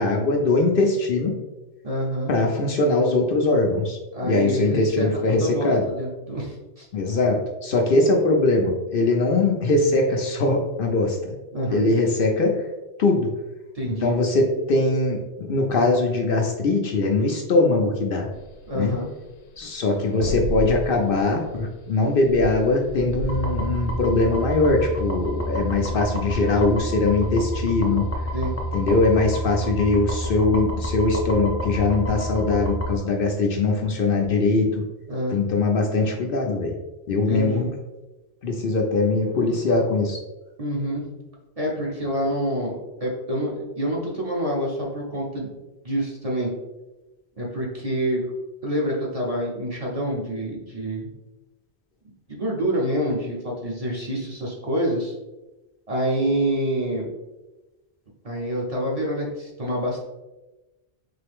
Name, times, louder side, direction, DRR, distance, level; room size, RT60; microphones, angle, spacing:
voice 1, 0.0-1.4 2.3-5.9 6.9-11.4 11.7-12.6 13.0-13.3 14.0-18.3 18.7-18.9 19.6-28.0 28.7-34.8 35.3-36.7 37.1-37.7 38.4-40.2, left 2 dB, 60° left, 1 dB, 0.7 m, -21 dB
voice 2, 1.8-2.3 4.1-6.9 11.5-11.9 13.7-14.1 18.7-19.1 28.3-28.5 35.1-35.4 37.3-37.7 40.6-41.0 41.6-45.6 45.8-46.5 47.4-48.2 48.6-51.1 52.3-55.1 55.9-57.1 58.2-60.0, equal, 35° right, -3 dB, 0.8 m, -27 dB
sound 1, 18.3-29.1, equal, 90° left, 0.9 m, -35 dB
sound 2, 23.3-33.0, equal, 20° left, 0.4 m, -29 dB
3.8 x 3.3 x 3.4 m, 1.1 s
omnidirectional pair, 1.1 m